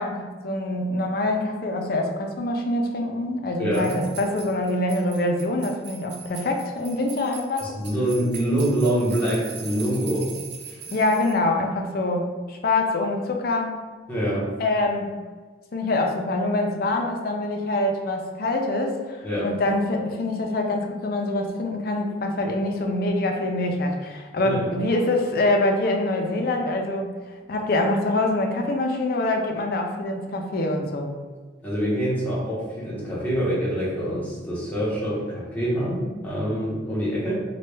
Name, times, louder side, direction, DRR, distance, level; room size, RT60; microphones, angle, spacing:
voice 1, 0.0-7.8 10.9-13.8 14.6-15.1 15.7-27.1 27.5-31.1, left 2 dB, 50° left, 3 dB, 0.4 m, -25 dB
voice 2, 3.6-3.9 7.6-10.3 10.7-10.8 14.1-14.5 19.2-19.5 24.3-24.7 31.6-37.3, equal, 10° left, -8 dB, 0.8 m, -25 dB
sound 1, 3.7-11.3, right 6 dB, 65° right, 0.5 m, -41 dB
3.1 x 2.2 x 3.2 m, 1.4 s
head